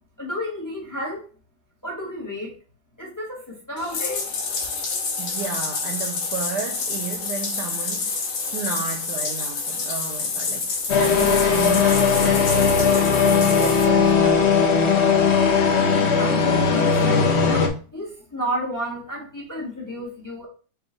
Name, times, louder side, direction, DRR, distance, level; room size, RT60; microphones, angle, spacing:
voice 1, 0.2-1.2 1.8-2.5 3.0-4.3 16.1-20.5, equal, 10° left, 1.0 m, -31 dB
Bathtub (filling or washing), 3.8-13.8, left 4 dB, 80° left, 1.8 m, -28 dB
voice 2, 5.2-15.0, right 6 dB, 75° right, 1.0 m, -33 dB
sound 1, 10.9-17.7, left 6 dB, 65° left, 0.6 m, -18 dB
4.3 x 2.9 x 3.8 m
omnidirectional pair, 2.1 m